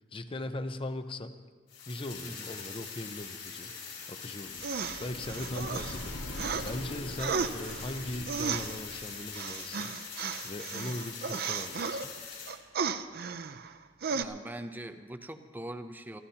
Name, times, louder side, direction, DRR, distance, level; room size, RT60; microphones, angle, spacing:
voice 1, 0.1-1.4 1.9-3.7 4.1-4.7 5.0-9.9 10.4-12.1, left 1 dB, 30° left, 9 dB, 0.7 m, -39 dB
sound 1, 1.7-12.5, left 6 dB, 65° left, 5.4 m, -43 dB
sound 2, 4.5-9.2, left 1 dB, 85° left, 1.4 m, -43 dB
sound 3, 4.6-6.7 7.2-12.1 12.5-13.8 14.0-14.2, right 6 dB, 55° right, 0.6 m, -34 dB
voice 2, 14.1-16.2, right 1 dB, 10° right, 8 dB, 0.6 m, -42 dB
26.0 x 14.0 x 2.9 m, 1.5 s
head